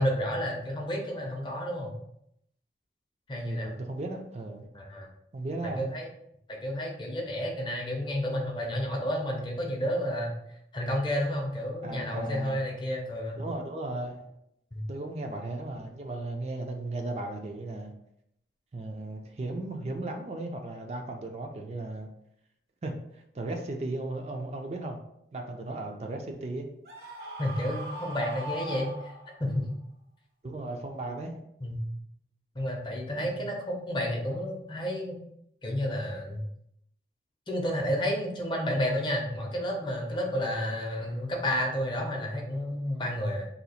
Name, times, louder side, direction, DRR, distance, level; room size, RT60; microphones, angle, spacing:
voice 1, 0.0-1.9 3.3-3.7 4.7-5.1 5.8-6.1 6.6-10.3 10.7-13.4 14.7-14.9 27.4-29.1 29.4-29.7 31.6-31.9 32.5-35.2 35.6-36.4 37.5-43.5, equal, 25° left, 0 dB, 0.6 m, -31 dB
voice 2, 3.4-4.7 5.3-5.9 11.8-12.6 13.4-14.3 14.9-17.9 18.7-22.1 22.8-22.9 23.3-25.0 25.3-26.7 30.4-31.4 33.2-33.3, right 2 dB, 35° right, 3 dB, 0.4 m, -36 dB
Screaming, 26.8-29.5, equal, 60° right, 0.8 m, -40 dB
2.8 x 2.4 x 4.1 m, 0.75 s
head